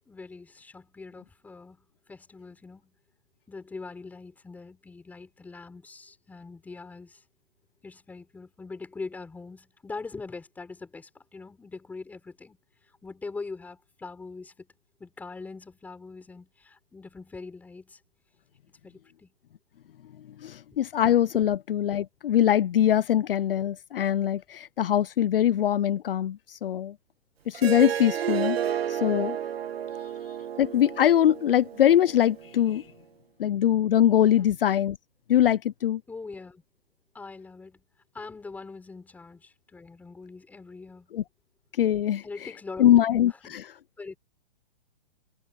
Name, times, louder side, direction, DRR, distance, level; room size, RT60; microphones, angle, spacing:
voice 1, 0.0-2.9 3.5-7.2 7.8-12.6 13.0-14.7 15.0-18.0 18.8-19.3 34.4-34.6 36.1-36.6 37.1-37.8 38.1-41.1 42.2-43.2 44.0-44.2, left 4 dB, 5° left, 6.0 m, -42 dB
voice 2, 20.4-26.9 27.5-29.4 30.6-32.8 33.4-35.0 35.3-36.0 41.1-41.2 41.8-42.5 42.8-43.7, left 11 dB, 60° left, 0.7 m, -23 dB
Harp, 27.5-32.7, right 9 dB, 70° right, 2.3 m, -32 dB
hypercardioid pair, 170°, 31 cm